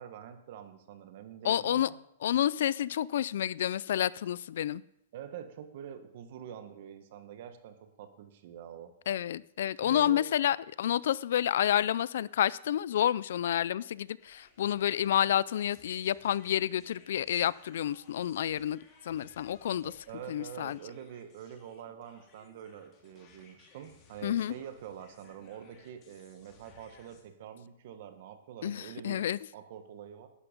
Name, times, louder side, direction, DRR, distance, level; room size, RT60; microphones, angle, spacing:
voice 1, 0.0-2.0 5.1-8.9 9.8-10.2 19.8-29.2 29.5-30.3, right 9 dB, 50° right, 8 dB, 1.5 m, -46 dB
voice 2, 1.4-1.9 2.2-4.8 9.1-18.8 19.0-19.9 20.3-20.8 24.2-24.5 28.6-29.4, left 11 dB, 65° left, 21 dB, 0.4 m, -29 dB
sound 1, 14.2-27.2, left 5 dB, 25° left, 2.5 m, -61 dB
12.0 x 10.0 x 5.3 m, 0.79 s
hypercardioid pair, 160°, 0 cm